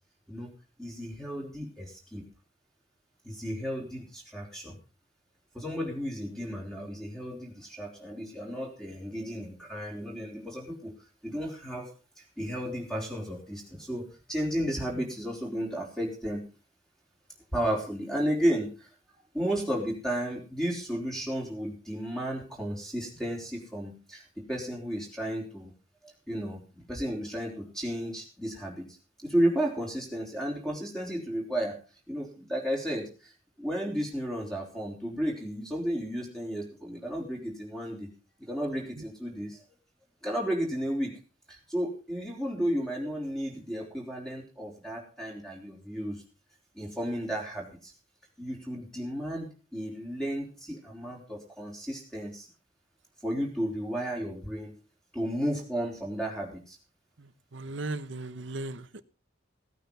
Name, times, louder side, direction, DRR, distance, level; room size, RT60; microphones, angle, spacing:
voice 1, 0.8-2.3 3.2-4.8 5.5-10.9 11.2-16.5 17.5-18.9 19.3-25.7 26.0-28.8 29.2-31.8 32.1-33.3 33.6-38.1 38.4-39.6 40.2-41.2 41.5-46.2 46.7-47.9 48.4-52.5 53.2-54.8 55.1-56.8, equal, 5° left, -1 dB, 4.0 m, -33 dB
voice 2, 57.2-58.9, right 2 dB, 60° right, 14 dB, 1.0 m, -37 dB
17.0 x 9.3 x 5.6 m, 0.36 s
head